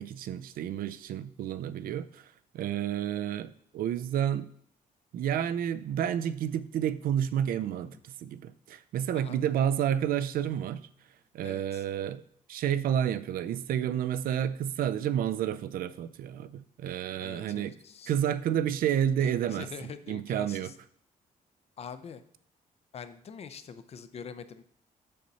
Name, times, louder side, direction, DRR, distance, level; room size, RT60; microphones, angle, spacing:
voice 1, 0.0-2.2 2.5-4.5 5.1-8.0 8.2-10.9 11.3-12.2 12.5-17.7 18.1-19.7 20.1-20.7, right 10 dB, 75° right, 0.5 m, -30 dB
voice 2, 9.1-9.5 11.4-11.9 17.2-18.1 19.2-20.7 21.8-22.2 22.9-24.6, left 6 dB, 45° left, 0.6 m, -44 dB
6.6 x 6.6 x 4.2 m
cardioid pair, 125°, 15 cm